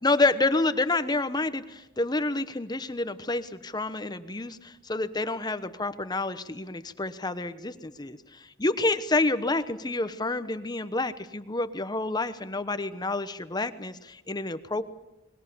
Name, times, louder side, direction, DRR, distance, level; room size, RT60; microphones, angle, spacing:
voice 1, 0.0-14.8, left 2 dB, 20° left, 11 dB, 1.0 m, -28 dB
30.0 x 21.0 x 7.0 m, 0.95 s
head